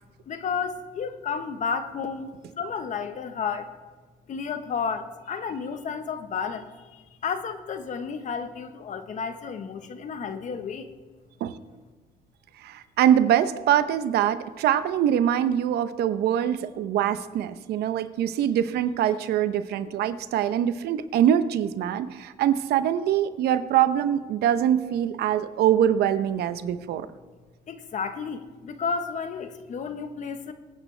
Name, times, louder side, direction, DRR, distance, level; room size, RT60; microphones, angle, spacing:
voice 1, 0.3-3.7 4.3-10.9 27.7-30.5, left 6 dB, 45° left, 9 dB, 1.2 m, -32 dB
voice 2, 12.6-27.1, right 10 dB, 75° right, 11 dB, 0.8 m, -23 dB
25.0 x 9.2 x 3.4 m, 1.4 s
cardioid pair, 110°, 17 cm